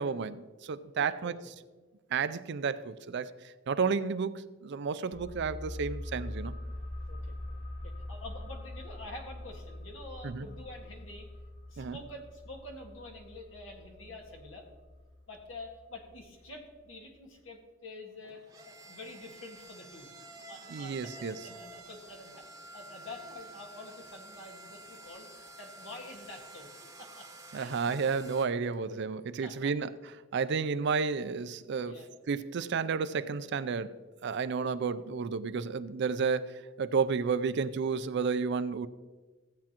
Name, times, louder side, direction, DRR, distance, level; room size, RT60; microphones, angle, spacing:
voice 1, 0.0-1.4 2.1-6.5 10.2-10.5 11.8-12.0 20.7-21.4 27.5-29.9 30.3-31.9 32.3-34.0 34.2-38.9, right 5 dB, 60° right, 0.4 m, -31 dB
voice 2, 0.9-1.3 7.1-7.4 7.8-11.3 11.7-14.7 15.3-20.1 20.5-26.7 27.0-27.3 27.5-28.0 29.4-29.7 31.8-32.1 34.6-34.7 36.9-37.0, left 2 dB, 80° left, 1.8 m, -47 dB
sound 1, 5.1-16.5 16.8-16.9, left 1 dB, 60° left, 2.7 m, -43 dB
sound 2, 18.1-28.5, right 2 dB, 20° right, 0.9 m, -50 dB
15.5 x 8.5 x 3.0 m
head